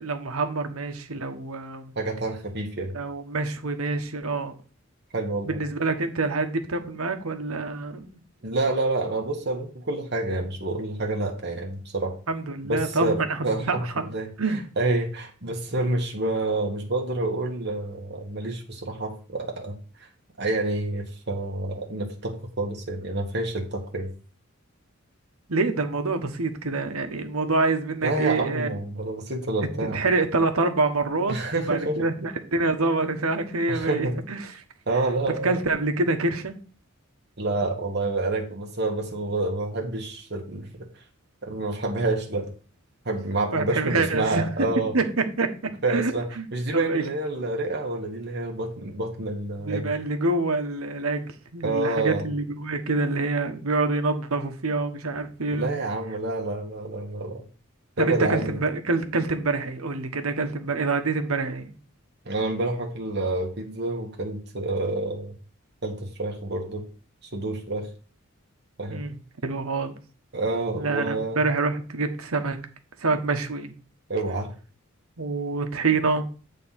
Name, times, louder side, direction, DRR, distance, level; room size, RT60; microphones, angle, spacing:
voice 1, 0.0-1.9 2.9-4.6 5.4-8.1 12.3-13.9 14.4-14.6 25.5-28.7 29.9-31.4 31.7-34.5 35.4-36.6 43.5-44.4 44.9-47.0 49.6-55.7 58.0-61.7 68.9-69.2 69.4-69.9 70.7-72.6 73.0-73.7 75.2-76.2, right 3 dB, 85° right, 1.2 m, -26 dB
voice 2, 1.9-2.9 5.1-5.6 8.4-12.2 12.6-20.1 20.4-24.1 28.0-30.0 31.3-32.0 33.7-34.2 34.9-35.6 37.4-40.9 41.4-42.5 43.0-45.0 45.8-49.9 51.6-52.3 55.5-57.4 58.0-58.6 62.2-65.3 65.8-66.9 67.3-67.9 68.8-69.0 70.3-71.4 74.1-74.5, right 2 dB, 50° right, 1.4 m, -28 dB
9.0 x 3.8 x 5.7 m
head